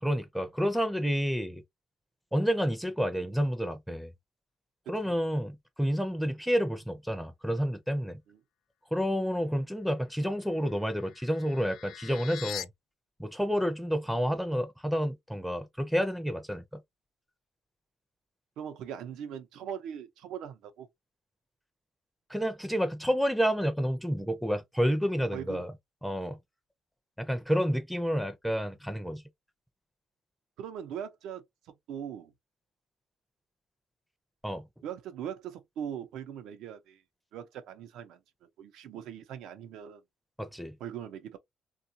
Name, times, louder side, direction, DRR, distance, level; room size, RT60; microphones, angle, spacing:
voice 1, 0.0-1.6 2.3-4.1 4.9-8.2 8.9-12.7 13.2-16.8 22.3-25.7 26.0-26.4 27.2-29.2 34.4-34.7 40.4-40.8, equal, ahead, 0.4 m, -29 dB
sound 1, 10.4-12.7, left 12 dB, 75° left, 0.3 m, -43 dB
voice 2, 18.6-20.9 25.3-25.6 30.6-31.4 31.9-32.3 34.8-37.0 37.3-38.2 38.6-40.0 40.8-41.4, right 9 dB, 85° right, 0.6 m, -40 dB
3.7 x 2.4 x 2.6 m
cardioid pair, 150°, 0 cm